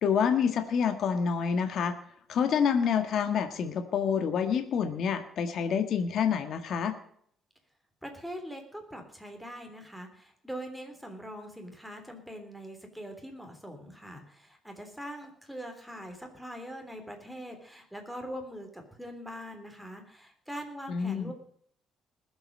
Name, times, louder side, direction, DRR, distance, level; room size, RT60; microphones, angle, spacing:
voice 1, 0.0-1.9 2.3-6.9 20.9-21.3, left 7 dB, 60° left, 8 dB, 1.5 m, -27 dB
voice 2, 8.0-21.3, equal, ahead, 3 dB, 3.3 m, -42 dB
20.5 x 8.0 x 5.3 m, 0.64 s
cardioid pair, 125°, 0 cm